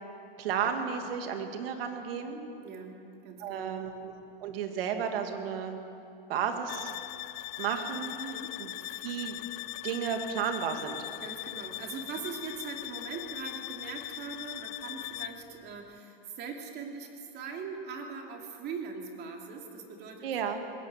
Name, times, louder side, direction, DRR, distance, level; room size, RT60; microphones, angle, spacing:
voice 1, 0.4-2.4 3.4-4.1 4.4-5.8 6.3-6.9 7.6-8.1 8.6-8.7 9.0-9.4 9.8-11.0 20.2-20.6, right 7 dB, 75° right, 5 dB, 2.5 m, -33 dB
voice 2, 2.6-3.8 8.2-8.5 8.8-9.1 11.2-20.3, right 5 dB, 35° right, 2 dB, 2.8 m, -41 dB
sound 1, 6.7-15.5, left 19 dB, 45° left, 0.4 m, -40 dB
20.5 x 18.0 x 7.6 m, 2.8 s
supercardioid pair, 150°, 29 cm